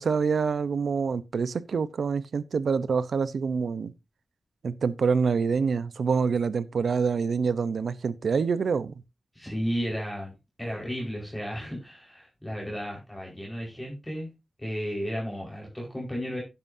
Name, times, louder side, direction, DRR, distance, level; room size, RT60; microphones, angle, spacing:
voice 1, 0.0-3.9 4.6-8.9, right 5 dB, 80° right, 0.8 m, -26 dB
voice 2, 9.3-10.3 10.6-14.3 14.6-16.4, equal, 10° left, 4.8 m, -33 dB
11.0 x 10.0 x 2.7 m
cardioid pair, 60°, 0 cm